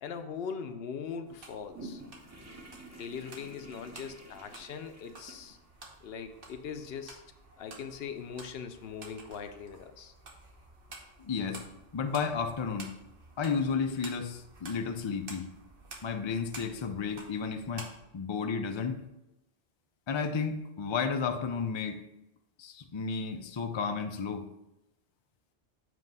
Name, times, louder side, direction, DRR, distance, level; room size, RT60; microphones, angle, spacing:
voice 1, 0.0-2.0 3.0-5.6 6.0-7.2 7.6-10.1, left 6 dB, 65° left, 8 dB, 0.8 m, -41 dB
sound 1, 1.3-18.0, right 2 dB, 55° right, 1.2 m, -51 dB
sound 2, 1.7-9.8, right 1 dB, 15° right, 0.7 m, -52 dB
voice 2, 11.2-11.6 11.9-12.9 13.4-15.5 16.0-19.0 20.1-22.0 22.6-24.5, left 5 dB, 45° left, 6 dB, 0.3 m, -32 dB
7.6 x 3.0 x 5.2 m, 0.91 s
omnidirectional pair, 1.1 m